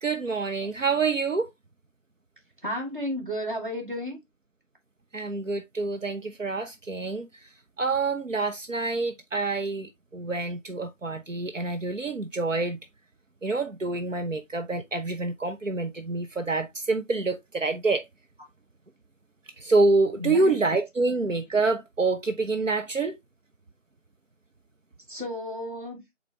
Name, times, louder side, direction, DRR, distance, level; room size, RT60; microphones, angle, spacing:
voice 1, 0.0-1.5 5.1-7.5 7.8-12.8 13.4-18.0 19.6-23.2, right 3 dB, 75° right, 0.9 m, -27 dB
voice 2, 2.6-4.2 20.2-20.6 25.1-26.0, left 1 dB, 40° right, 2.2 m, -32 dB
7.8 x 4.2 x 2.9 m
figure-of-eight pair, 170°, 38 cm